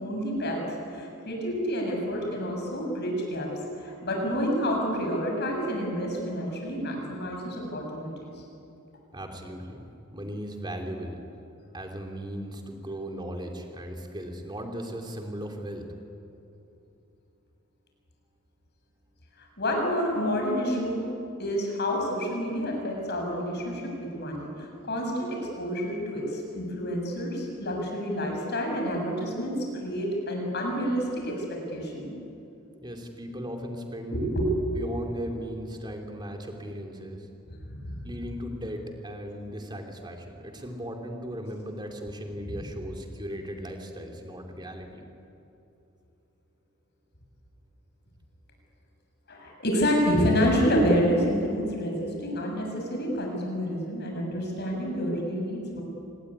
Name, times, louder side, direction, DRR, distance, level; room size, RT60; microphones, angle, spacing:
voice 1, 0.0-3.5 3.8-8.4 19.4-21.1 21.4-32.1 34.1-34.7 37.6-38.1 49.3-55.8, equal, 50° left, 0 dB, 6.7 m, -28 dB
voice 2, 9.1-11.2 11.7-15.9 32.8-34.3 34.8-37.3 38.0-45.0, equal, 20° right, 3 dB, 2.9 m, -37 dB
26.5 x 20.0 x 9.8 m, 2.8 s
head